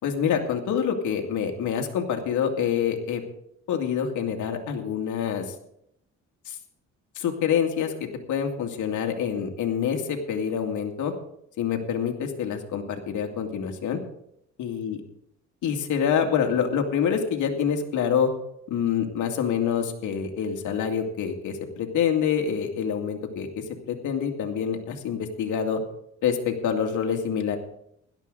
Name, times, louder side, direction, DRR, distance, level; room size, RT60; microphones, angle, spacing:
voice 1, 0.0-3.2 3.7-5.4 6.5-6.6 7.2-11.1 11.6-14.0 14.6-15.0 15.6-18.3 18.7-25.8 26.2-27.6, left 7 dB, 80° left, 3 dB, 2.5 m, -26 dB
16.5 x 12.5 x 4.0 m, 0.74 s
cardioid pair, 90°, 30 cm